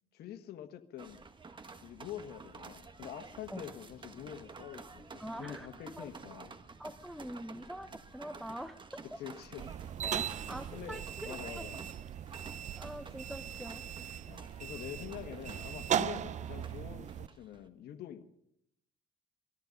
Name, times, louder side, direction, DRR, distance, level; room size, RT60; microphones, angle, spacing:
voice 1, 0.1-1.2 1.8-6.6 9.1-9.6 10.2-10.3 10.7-11.9 14.3-18.2, left 10 dB, 70° left, 8 dB, 1.5 m, -46 dB
sound 1, 1.0-17.7, right 4 dB, 30° right, 1.5 m, -51 dB
voice 2, 5.2-5.7 6.0-6.1 6.8-9.0 10.0-11.7 12.8-13.8, equal, ahead, 10 dB, 0.8 m, -44 dB
sound 2, 9.6-17.3, right 9 dB, 45° right, 0.6 m, -38 dB
19.5 x 14.0 x 5.3 m, 0.74 s
cardioid pair, 110°, 17 cm